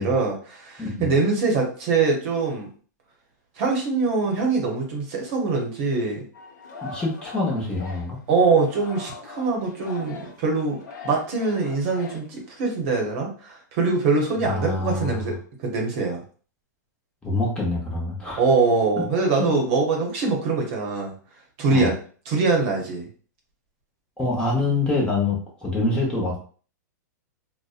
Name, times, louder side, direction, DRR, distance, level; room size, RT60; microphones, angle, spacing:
voice 1, 0.0-2.7 3.6-6.2 8.3-10.8 11.0-15.3 15.6-16.2 18.4-21.1 21.6-22.0 22.3-23.1, right 4 dB, 50° right, 1 dB, 0.8 m, -23 dB
voice 2, 0.8-1.1 6.8-8.2 14.4-15.4 17.2-18.4 19.4-19.5 21.7-21.9 24.2-26.4, left 3 dB, 10° left, -4 dB, 0.8 m, -25 dB
Singing, 6.3-12.8, left 4 dB, 75° left, 0.7 m, -41 dB
2.6 x 2.1 x 2.4 m, 0.42 s
hypercardioid pair, 135°, 10 cm